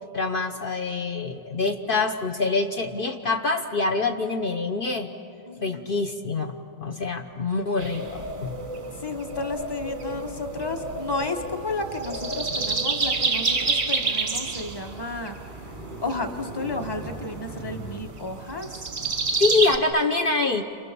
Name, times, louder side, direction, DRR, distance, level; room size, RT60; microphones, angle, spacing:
voice 1, 0.1-5.1 5.6-8.6 19.4-20.6, left 3 dB, 65° left, 3 dB, 0.5 m, -25 dB
voice 2, 5.5-5.8 9.0-15.7 16.0-18.9, left 2 dB, 15° left, 4 dB, 1.1 m, -32 dB
sound 1, 7.8-19.8, right 4 dB, 35° right, 0.9 m, -29 dB
Car, 11.2-18.0, right 1 dB, 45° left, 3.5 m, -43 dB
30.0 x 27.5 x 6.9 m, 2.8 s
omnidirectional pair, 2.3 m